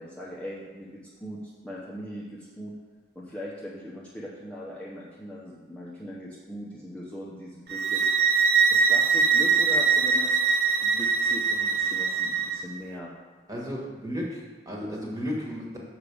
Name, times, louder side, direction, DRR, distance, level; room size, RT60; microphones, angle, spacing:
voice 1, 0.0-2.7 3.1-8.0 8.7-10.4 10.8-13.1, equal, 5° left, -7 dB, 0.9 m, -40 dB
sound 1, 7.7-12.6, right 5 dB, 60° right, 0.6 m, -22 dB
voice 2, 13.5-15.8, equal, 20° right, -3 dB, 1.6 m, -34 dB
6.6 x 4.8 x 6.9 m, 1.5 s
head